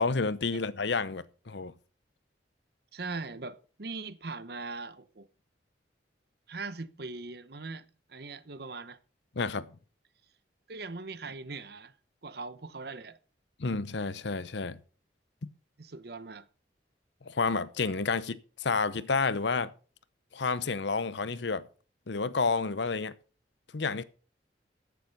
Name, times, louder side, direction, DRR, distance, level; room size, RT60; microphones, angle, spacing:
voice 1, 0.0-1.7 9.4-9.7 13.6-14.8 15.4-15.5 17.3-19.7 20.3-21.7 22.1-23.1 23.7-24.0, left 4 dB, 75° left, 0.8 m, -30 dB
voice 2, 2.9-5.3 6.5-9.0 10.7-11.9 12.2-13.2 15.8-16.5 18.1-18.2, right 3 dB, 55° right, 0.9 m, -40 dB
14.0 x 7.3 x 5.3 m
head